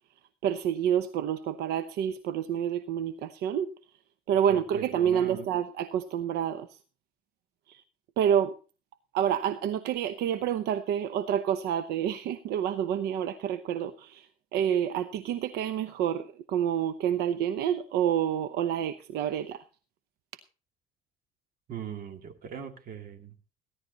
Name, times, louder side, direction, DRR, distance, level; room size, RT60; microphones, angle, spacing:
voice 1, 0.4-3.7 4.3-6.7 7.7-7.8 8.2-8.5 9.1-14.3 14.5-19.6, right 9 dB, 85° right, 11 dB, 0.9 m, -28 dB
voice 2, 4.5-5.5 21.7-23.3, right 7 dB, 60° right, 6 dB, 2.2 m, -40 dB
16.5 x 11.5 x 4.1 m, 0.36 s
cardioid pair, 110°, 17 cm